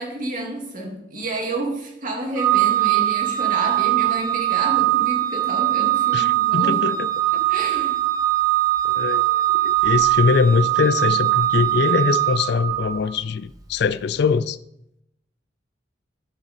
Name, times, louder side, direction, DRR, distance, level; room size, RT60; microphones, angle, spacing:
voice 1, 0.0-6.7 7.3-8.0, right 2 dB, 50° right, 2.2 m, -30 dB
Organ, 2.4-13.1, right 15 dB, 20° right, 0.9 m, -21 dB
voice 2, 6.1-7.1 8.9-14.6, left 5 dB, 65° left, 0.4 m, -22 dB
11.0 x 6.4 x 4.3 m
head